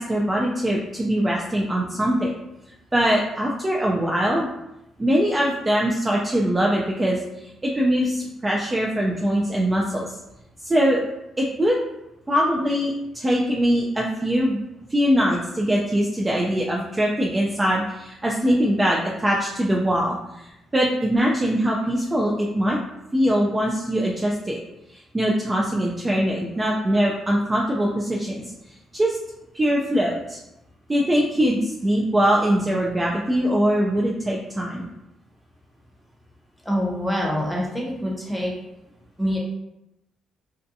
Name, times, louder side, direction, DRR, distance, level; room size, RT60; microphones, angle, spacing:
voice 1, 0.0-2.3 2.9-4.5 5.0-10.1 10.6-11.0 11.4-11.8 12.3-14.6 14.9-22.8 23.1-24.6 24.9-29.2 29.5-30.4 30.9-34.9, equal, 20° right, -3 dB, 0.3 m, -22 dB
voice 2, 36.6-38.5 39.2-39.4, equal, ahead, -3 dB, 0.8 m, -25 dB
2.6 x 2.2 x 2.6 m, 0.88 s
cardioid pair, 90°, 0 cm